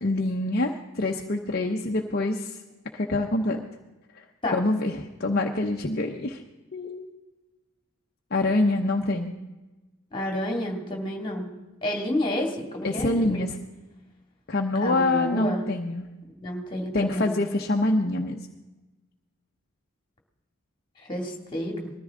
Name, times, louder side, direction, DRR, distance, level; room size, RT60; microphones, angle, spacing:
voice 1, 0.0-2.6 2.9-3.6 4.1-4.2 4.5-6.4 6.7-7.1 8.3-9.3 12.8-13.6 14.5-16.1 16.9-18.4, left 2 dB, 45° left, 2 dB, 0.8 m, -25 dB
voice 2, 10.1-11.5 11.8-13.4 14.8-15.6 16.4-17.3 21.0-21.9, left 1 dB, 20° left, 2 dB, 2.4 m, -30 dB
20.0 x 14.0 x 3.7 m, 1.1 s
head